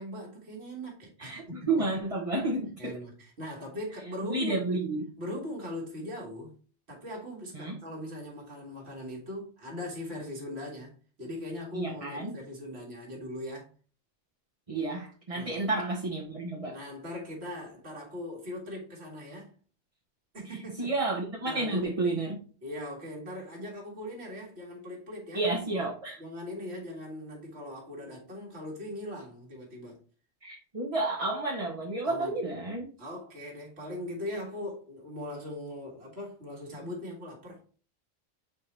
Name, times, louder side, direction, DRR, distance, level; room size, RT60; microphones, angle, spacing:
voice 1, 0.0-1.8 2.8-4.6 5.2-6.5 6.9-13.7 15.3-15.6 16.7-19.5 20.3-20.9 21.5-21.9 22.6-25.4 26.2-30.0 32.0-32.4 33.0-37.6, left 1 dB, 60° right, -3 dB, 2.3 m, -40 dB
voice 2, 1.2-3.0 4.3-5.0 7.5-7.8 11.7-12.4 14.7-16.8 20.4-22.4 25.3-26.2 30.4-32.9, right 2 dB, 30° right, -1 dB, 1.0 m, -31 dB
7.5 x 4.6 x 3.3 m, 0.40 s
omnidirectional pair, 1.2 m